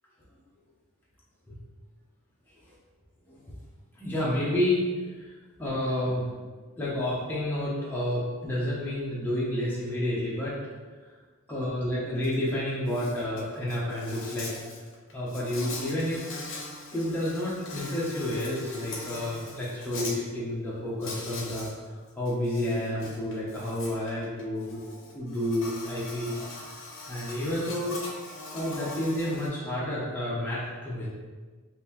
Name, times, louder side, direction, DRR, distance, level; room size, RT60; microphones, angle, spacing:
voice 1, 4.0-4.8 5.1-5.3 5.6-6.3 6.8-10.6 11.0-11.1 11.5-14.5 15.1-16.2 16.9-24.8 25.1-26.4 27.1-28.0 28.5-31.1, left 1 dB, 10° left, -8 dB, 0.6 m, -30 dB
Insect, 12.2-12.4 12.7-20.1 21.0-21.7 22.1-29.5, left 2 dB, 60° left, 0.6 m, -41 dB
2.9 x 2.6 x 3.6 m, 1.4 s
head